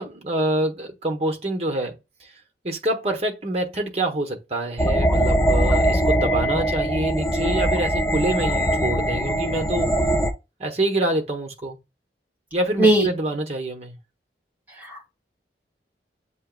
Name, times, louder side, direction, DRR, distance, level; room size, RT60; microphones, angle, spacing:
voice 1, 0.0-1.9 2.6-9.9 10.6-11.8 12.5-14.0, right 1 dB, 35° right, 1.1 m, -26 dB
sound 1, 4.8-10.3, equal, 15° left, 0.6 m, -21 dB
voice 2, 12.8-13.1 14.8-15.1, right 1 dB, 10° right, 2.0 m, -18 dB
7.5 x 3.0 x 2.4 m
head